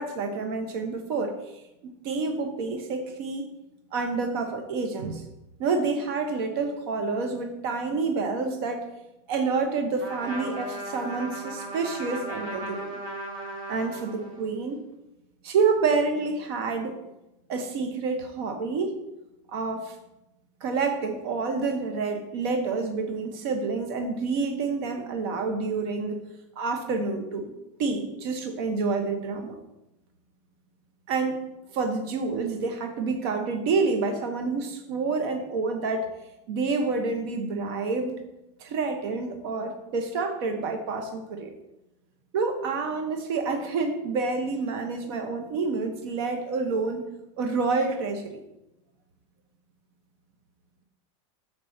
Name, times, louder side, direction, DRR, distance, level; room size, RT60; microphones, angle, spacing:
voice 1, 0.0-1.6 2.0-3.5 3.9-5.3 5.6-8.9 9.3-12.9 13.7-14.8 15.4-17.0 17.5-19.0 19.5-20.0 20.6-26.2 26.6-27.5 27.8-29.6 31.1-36.1 36.5-38.2 38.6-41.5 42.3-47.1 47.4-48.4, right 4 dB, 45° right, 5 dB, 0.9 m, -28 dB
Trumpet, 10.0-14.6, right 1 dB, 80° right, 2.4 m, -37 dB
7.1 x 4.7 x 6.4 m, 0.92 s
supercardioid pair, 170°, 17 cm